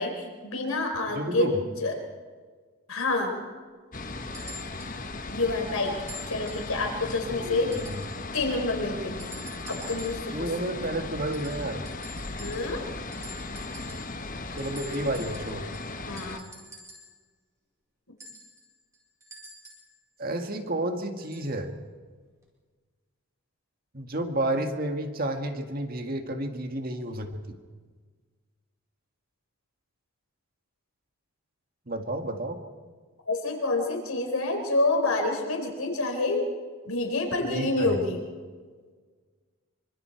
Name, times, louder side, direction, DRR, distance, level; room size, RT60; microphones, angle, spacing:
voice 1, 0.0-1.9 2.9-3.4 5.3-5.9 6.3-7.8 8.3-9.3 9.7-10.5 12.4-12.9 16.0-16.5 33.3-36.4 36.8-38.2, left 2 dB, 75° left, 3 dB, 4.4 m, -28 dB
voice 2, 1.1-1.6 7.3-8.0 10.3-11.9 14.6-15.7 20.2-21.7 23.9-27.6 31.9-32.6 37.4-38.0, right 1 dB, 40° right, 5 dB, 1.8 m, -31 dB
sound 1, 3.9-16.4, left 3 dB, 35° left, 1.2 m, -37 dB
sound 2, 4.3-5.0 6.1-6.7 7.7-8.3 9.2-10.3 11.3-12.9 13.1-14.2 14.6-17.2 18.2-19.9 21.2-21.5 22.4-22.5, equal, 15° right, 5.0 m, -46 dB
26.0 x 25.0 x 4.6 m, 1.5 s
head